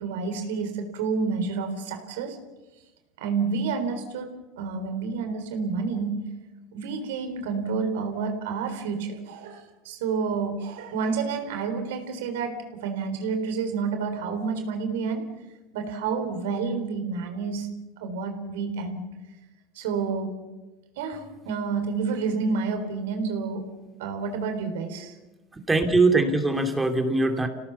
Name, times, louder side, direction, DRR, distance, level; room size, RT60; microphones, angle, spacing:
voice 1, 0.0-2.4 3.2-6.3 6.7-15.3 15.7-17.7 18.0-19.0 19.7-20.3 21.0-23.7 24.0-25.2, right 5 dB, 85° right, 6 dB, 4.0 m, -29 dB
voice 2, 25.7-27.5, right 3 dB, 15° right, 5 dB, 2.8 m, -21 dB
27.5 x 17.5 x 7.0 m, 1.1 s
supercardioid pair, 105°, 0 cm